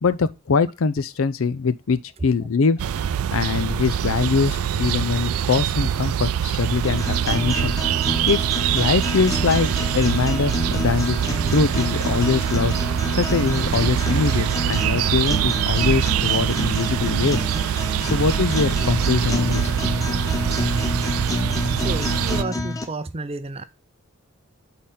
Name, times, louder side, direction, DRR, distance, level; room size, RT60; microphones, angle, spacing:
voice 1, 0.0-2.8 3.3-7.8 8.3-8.4 8.7-9.7 9.9-11.2 11.5-17.5 18.0-19.7, left 5 dB, 70° left, 0.5 m, -23 dB
sound 1, 2.8-22.4, right 9 dB, 85° right, 0.4 m, -24 dB
sound 2, 6.8-22.8, left 1 dB, 15° left, 0.7 m, -29 dB
voice 2, 21.8-23.6, right 3 dB, 25° right, 0.5 m, -31 dB
8.4 x 3.9 x 3.7 m
head